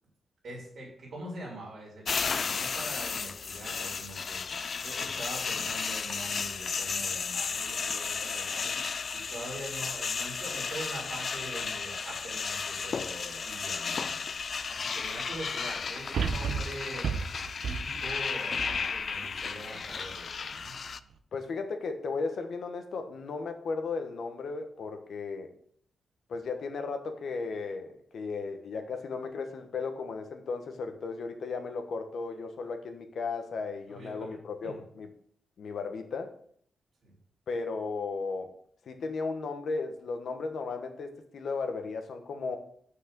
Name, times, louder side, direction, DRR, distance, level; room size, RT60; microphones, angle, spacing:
voice 1, 0.4-8.8 9.1-14.2 14.7-17.1 17.6-20.8 33.9-34.4 34.6-34.8 37.0-37.1, right 1 dB, 45° right, -3 dB, 3.4 m, -43 dB
Shaving cream can release, 2.0-21.0, left 5 dB, 40° left, 0.3 m, -34 dB
sound 1, 14.4-14.5 16.1-19.5 20.0-20.1, right 6 dB, 65° right, 0.7 m, -33 dB
voice 2, 21.3-25.5 26.3-35.1 35.6-36.3 37.5-38.5 38.8-42.6, left 4 dB, 60° left, 6 dB, 1.2 m, -35 dB
6.4 x 5.9 x 6.7 m, 0.62 s
wide cardioid pair, 155°, 0 cm